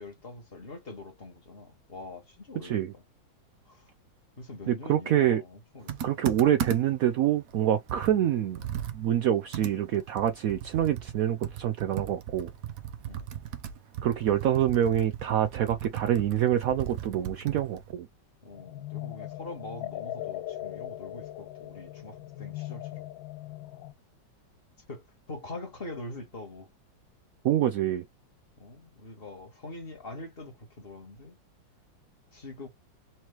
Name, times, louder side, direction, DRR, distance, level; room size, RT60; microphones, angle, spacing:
voice 1, 0.0-2.8 3.7-3.8 4.4-6.1 13.0-13.3 18.4-23.1 24.9-26.7 28.6-31.4 32.3-32.7, left 2 dB, 35° left, 1.6 m, -43 dB
voice 2, 2.6-2.9 4.7-5.4 6.0-8.6 8.9-12.5 14.0-18.1 27.4-28.0, right 11 dB, 85° right, 0.7 m, -26 dB
Computer keyboard, 5.9-7.1 7.5-7.6 7.9-11.2 11.4-17.9, right 9 dB, 60° right, 0.9 m, -37 dB
sound 1, 18.5-23.9, left 15 dB, 85° left, 1.3 m, -39 dB
4.4 x 3.0 x 3.0 m
omnidirectional pair, 2.0 m